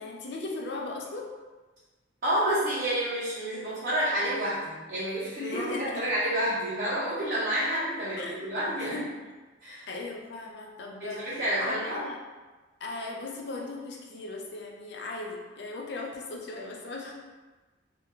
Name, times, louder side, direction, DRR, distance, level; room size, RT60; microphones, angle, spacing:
voice 1, 0.0-1.3 5.3-6.1 8.2-8.5 8.8-9.1 9.9-12.2 12.8-17.1, left 2 dB, 65° left, 0 dB, 0.5 m, -37 dB
voice 2, 2.2-5.7 6.0-8.9 9.6-9.9 11.0-12.0, right 1 dB, 55° right, -11 dB, 0.8 m, -29 dB
2.4 x 2.2 x 3.6 m, 1.3 s
head